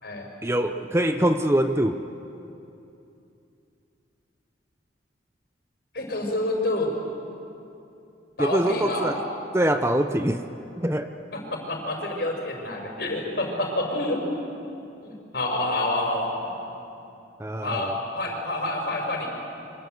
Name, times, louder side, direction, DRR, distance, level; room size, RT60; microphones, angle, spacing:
voice 1, 0.4-2.0 8.4-9.2 9.5-10.4 10.8-11.1 17.4-18.0, right 1 dB, 15° right, 7 dB, 0.7 m, -23 dB
voice 2, 5.9-6.9 8.4-9.1 11.3-14.2 15.0-16.5 17.6-19.3, left 1 dB, 55° left, 2 dB, 5.3 m, -28 dB
27.5 x 24.5 x 7.9 m, 2.7 s
head